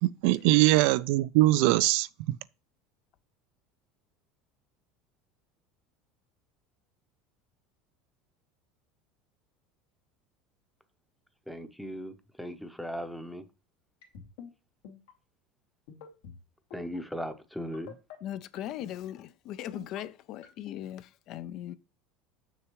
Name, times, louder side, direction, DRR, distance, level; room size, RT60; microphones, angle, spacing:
voice 1, 0.0-2.1, right 17 dB, 65° right, 0.3 m, -22 dB
voice 2, 11.5-13.5 16.7-18.0, equal, ahead, 0.7 m, -38 dB
sound 1, 14.0-14.5 14.8-15.1 15.9-16.4 16.7-17.0 17.7-18.2 18.6-18.9 19.6-20.0 20.4-20.8, left 7 dB, 90° left, 2.5 m, -46 dB
voice 3, 18.2-21.8, left 12 dB, 45° left, 0.4 m, -39 dB
6.9 x 6.5 x 3.1 m
cardioid pair, 155°, 0 cm